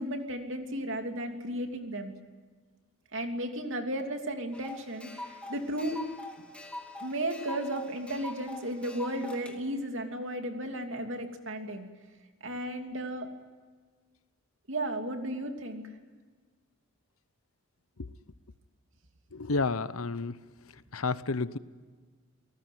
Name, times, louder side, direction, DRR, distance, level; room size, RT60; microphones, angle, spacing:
voice 1, 0.0-2.1 3.1-6.0 7.0-11.9 12.4-13.3 14.7-15.8, right 1 dB, 65° right, 5 dB, 2.9 m, -34 dB
sound 1, 4.5-9.6, left 1 dB, 5° left, 2.5 m, -43 dB
voice 2, 19.3-20.4 20.9-21.6, left 3 dB, 85° left, 15 dB, 1.0 m, -30 dB
29.5 x 19.0 x 9.5 m, 1.5 s
head